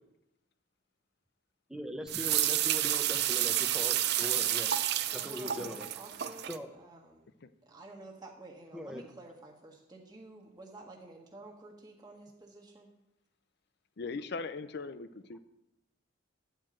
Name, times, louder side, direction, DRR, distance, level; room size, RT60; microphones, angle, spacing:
voice 1, 1.7-4.8 5.1-5.9 6.2-6.7 8.7-9.0, equal, 5° right, 5 dB, 0.7 m, -41 dB
sound 1, 2.1-6.6, right 12 dB, 50° right, 0.4 m, -30 dB
voice 2, 5.1-7.3 7.6-12.9, right 2 dB, 20° right, -1 dB, 1.5 m, -51 dB
voice 3, 14.0-15.4, left 4 dB, 50° left, 13 dB, 0.5 m, -39 dB
10.5 x 4.5 x 7.6 m, 0.88 s
head